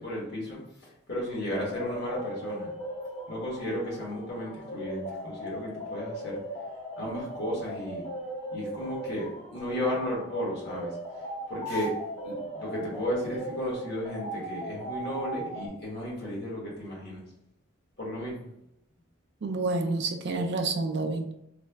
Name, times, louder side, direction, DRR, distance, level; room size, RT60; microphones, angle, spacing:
voice 1, 0.0-2.7 3.3-6.4 7.0-8.0 8.5-11.0 11.5-11.9 12.2-17.2 18.0-18.5, equal, 55° left, -4 dB, 1.3 m, -34 dB
sound 1, 1.7-15.7, equal, 30° left, 0.6 m, -38 dB
voice 2, 19.4-21.3, right 3 dB, 55° right, 5 dB, 0.4 m, -29 dB
3.2 x 2.0 x 3.4 m, 0.81 s
head